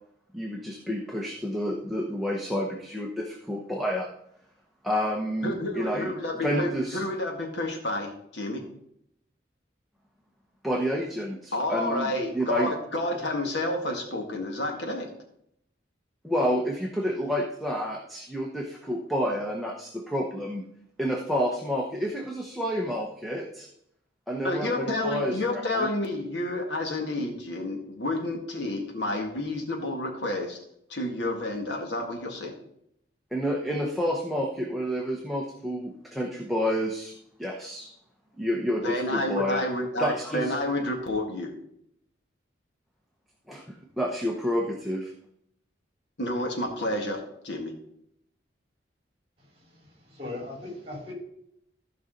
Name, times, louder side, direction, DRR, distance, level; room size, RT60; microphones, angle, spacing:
voice 1, 0.3-4.1 4.8-6.1 6.4-7.0 10.6-12.7 16.2-20.6 21.0-23.7 24.3-25.9 33.3-37.1 37.4-37.9 38.4-39.6 40.0-40.5 43.5-45.1, equal, ahead, -1 dB, 0.9 m, -29 dB
voice 2, 5.4-8.6 11.5-15.1 24.4-30.6 30.9-32.5 38.7-41.5 46.2-47.7, left 1 dB, 70° left, 2 dB, 2.0 m, -30 dB
voice 3, 49.5-51.1, left 2 dB, 30° right, -2 dB, 4.2 m, -39 dB
15.0 x 5.5 x 3.9 m, 0.74 s
head